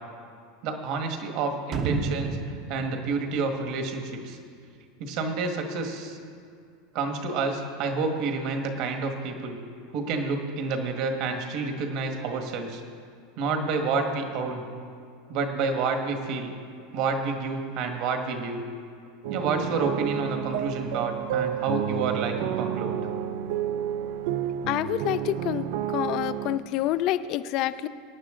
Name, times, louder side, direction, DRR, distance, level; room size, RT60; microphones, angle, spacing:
voice 1, 0.6-4.4 5.0-6.2 6.9-9.6 9.9-12.8 13.4-14.6 15.3-16.5 16.9-18.6 19.3-23.0, right 4 dB, 50° right, 4 dB, 1.5 m, -29 dB
sound 1, 1.7-4.5 4.8-4.9, right 4 dB, 35° right, 0.8 m, -33 dB
sound 2, 19.2-26.6, right 10 dB, 70° right, 0.5 m, -30 dB
voice 2, 24.7-25.6 25.9-27.9, left 13 dB, 45° left, 13 dB, 0.4 m, -27 dB
18.5 x 9.4 x 3.8 m, 2.3 s
supercardioid pair, 145°, 0 cm